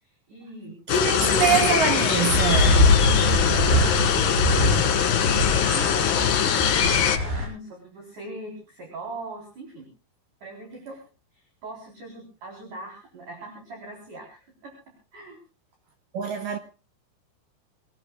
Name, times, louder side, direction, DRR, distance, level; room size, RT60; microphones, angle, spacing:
voice 1, 0.3-0.8 1.1-1.3 2.2-2.6 3.0-3.3 3.6-9.9 10.4-11.0 11.6-14.7 15.1-15.4, right 2 dB, 45° right, 5.3 m, -40 dB
sound 1, 0.9-7.2, left 9 dB, 65° left, 3.0 m, -22 dB
voice 2, 0.9-2.8 16.1-16.6, right 8 dB, 80° right, 2.0 m, -24 dB
sound 2, 2.3-7.5, left 1 dB, 60° right, 9.2 m, -23 dB
26.5 x 18.0 x 2.4 m
omnidirectional pair, 5.1 m